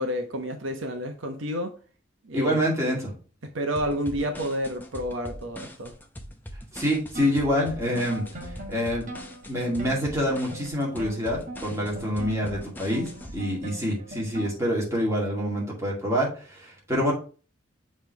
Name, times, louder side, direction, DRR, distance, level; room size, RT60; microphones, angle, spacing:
voice 1, 0.0-1.7 2.2-3.0 3.5-5.9, equal, 75° right, 5 dB, 1.0 m, -30 dB
voice 2, 2.3-3.1 6.7-9.1 9.5-17.1, equal, 15° right, -4 dB, 2.2 m, -26 dB
sound 1, 3.8-13.4, equal, 10° left, 0.7 m, -41 dB
sound 2, 7.1-14.8, right 1 dB, 40° right, 1.1 m, -42 dB
7.2 x 3.3 x 4.6 m, 0.38 s
head